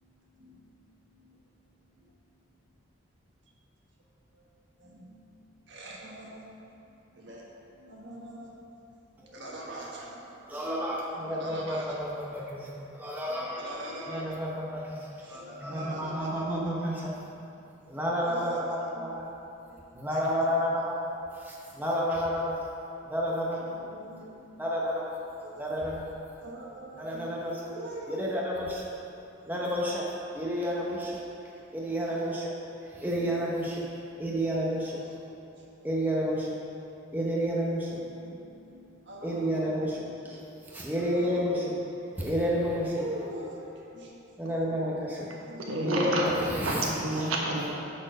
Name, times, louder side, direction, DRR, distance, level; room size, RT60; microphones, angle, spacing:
voice 1, 5.7-6.4 7.2-7.4 7.8-8.5 9.3-10.2 11.4-12.0 13.3-14.3 15.3-16.6 18.2-19.1 20.1-20.2 23.6-24.3 25.4-25.7 26.4-27.3 27.7-28.3 33.3-33.5 34.8-35.1 38.0-38.5 38.7-39.7 40.9-41.6 42.9-43.6 43.9-44.1 45.2-45.7, right 1 dB, 55° right, -3 dB, 1.4 m, -43 dB
voice 2, 10.4-13.6 14.1-17.1 17.9-19.3 19.9-22.7 23.1-23.7 24.6-25.2 25.6-26.2 27.0-27.6 28.0-28.9 29.4-31.2 31.7-32.5 32.9-33.8 34.2-35.0 35.8-36.5 37.1-38.0 39.2-40.4 40.7-41.7 42.2-43.3 44.4-45.3 45.8-46.9, equal, 10° right, -4 dB, 0.7 m, -30 dB
voice 3, 45.6-47.8, right 1 dB, 80° right, -3 dB, 1.3 m, -30 dB
9.0 x 4.4 x 6.2 m, 2.8 s
head